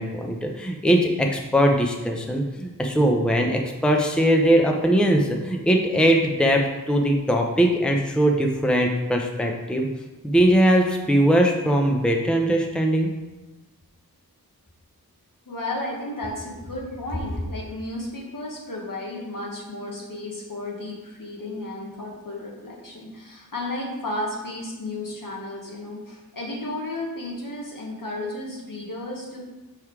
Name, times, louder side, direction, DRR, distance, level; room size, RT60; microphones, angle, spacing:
voice 1, 0.0-9.9 10.2-13.1, right 1 dB, 5° left, 1 dB, 0.7 m, -20 dB
voice 2, 15.4-29.4, left 1 dB, 65° left, -2 dB, 1.6 m, -33 dB
5.4 x 4.7 x 4.8 m, 1.1 s
wide cardioid pair, 60°, 36 cm